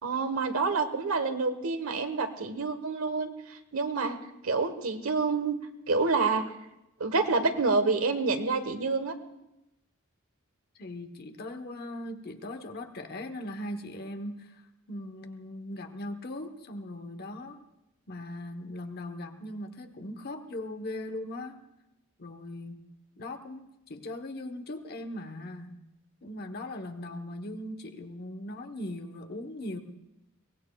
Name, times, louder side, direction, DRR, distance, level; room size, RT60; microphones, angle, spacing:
voice 1, 0.0-4.2 4.4-5.5 5.9-6.4 7.0-9.1, right 4 dB, 90° right, 8 dB, 1.2 m, -28 dB
voice 2, 10.8-17.7 18.1-21.6 22.2-22.8 23.2-25.8 26.2-29.8, left 1 dB, 50° left, 6 dB, 1.0 m, -39 dB
23.0 x 18.5 x 2.3 m, 0.91 s
head